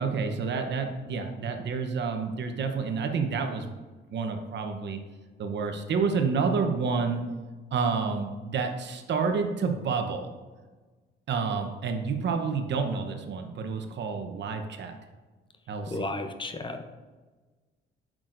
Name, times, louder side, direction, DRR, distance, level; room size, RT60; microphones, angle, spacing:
voice 1, 0.0-3.7 4.1-5.0 5.4-7.2 7.7-10.3 11.3-15.0 15.7-16.0, right 5 dB, 65° right, 5 dB, 0.9 m, -29 dB
voice 2, 15.9-16.8, left 2 dB, 25° left, 7 dB, 0.7 m, -33 dB
8.7 x 6.2 x 2.6 m, 1.3 s
cardioid pair, 90°, 20 cm